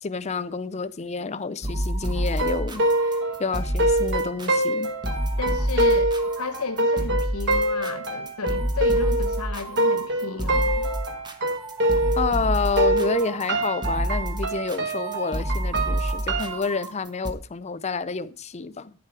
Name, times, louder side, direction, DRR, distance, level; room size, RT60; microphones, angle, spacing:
voice 1, 0.0-3.1 3.4-4.9 12.2-18.9, left 4 dB, 30° left, 0.5 m, -29 dB
sound 1, 1.6-17.3, right 1 dB, 20° right, 1.2 m, -29 dB
sound 2, 2.3-12.5 12.8-16.6, right 1 dB, 55° right, 1.9 m, -25 dB
voice 2, 5.4-10.9, left 4 dB, 85° left, 1.0 m, -33 dB
10.5 x 7.5 x 4.7 m
head